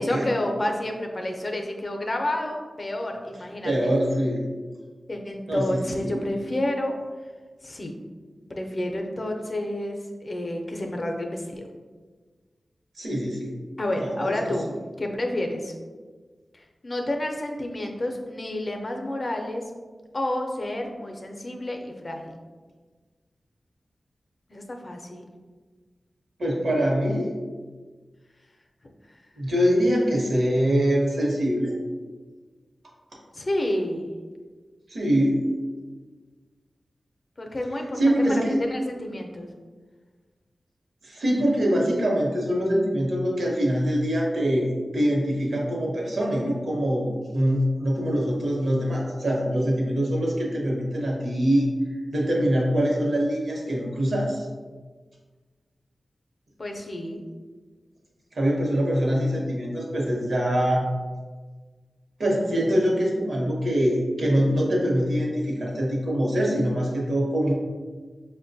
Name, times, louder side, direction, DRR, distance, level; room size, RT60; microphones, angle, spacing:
voice 1, 0.0-3.9 5.1-7.0 7.6-7.9 8.5-11.6 13.8-14.7 15.0-15.7 16.5-19.6 20.1-22.3 24.5-25.3 29.1-29.2 33.3-34.1 37.4-39.5 56.6-57.2, left 1 dB, 45° left, 2 dB, 0.5 m, -30 dB
voice 2, 3.6-4.4 5.5-6.2 13.0-13.5 14.0-14.3 26.4-27.3 29.4-31.7 34.9-35.4 38.0-38.6 41.0-51.7 52.1-54.4 58.3-60.8 62.2-67.5, equal, 75° right, -2 dB, 0.8 m, -24 dB
5.0 x 2.1 x 2.6 m, 1.4 s
wide cardioid pair, 75°, 0 cm